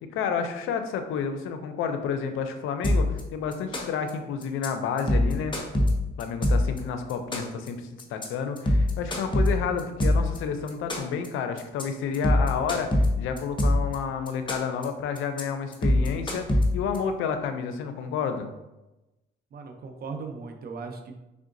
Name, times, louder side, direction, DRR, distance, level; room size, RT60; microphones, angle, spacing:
voice 1, 0.0-5.6 6.2-18.5, left 6 dB, 85° left, 7 dB, 0.5 m, -30 dB
sound 1, 2.8-3.2 3.5-4.1 4.4-4.7 5.0-6.8 7.1-7.7 8.0-8.2 8.6-10.4 10.7-11.3 11.6-11.8 12.1-13.9 14.3-14.8 15.2-15.4 15.7-17.0, left 1 dB, 25° left, 0.7 m, -23 dB
voice 2, 19.5-21.2, right 4 dB, 50° right, 5 dB, 0.6 m, -38 dB
3.7 x 3.4 x 2.5 m, 1.0 s
cardioid pair, 90°, 20 cm